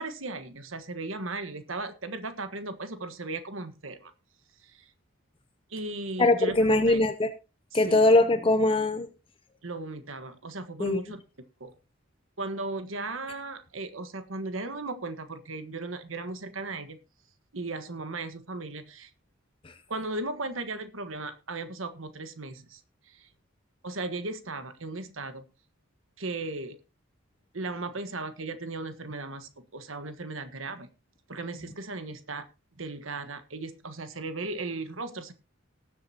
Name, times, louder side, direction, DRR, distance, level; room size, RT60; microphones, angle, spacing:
voice 1, 0.0-4.1 4.6-4.9 5.7-7.0 7.7-8.1 9.6-11.2 11.6-11.7 12.4-17.0 17.5-19.1 19.9-22.8 23.1-23.3 23.8-25.4 26.2-26.8 27.5-30.9 31.3-32.5 32.8-35.3, right 2 dB, 70° right, 9 dB, 1.5 m, -36 dB
voice 2, 6.2-7.3 7.7-9.1 10.8-11.0 19.6-19.7, left 2 dB, 25° left, 9 dB, 0.7 m, -22 dB
19.0 x 7.6 x 2.9 m, 0.29 s
head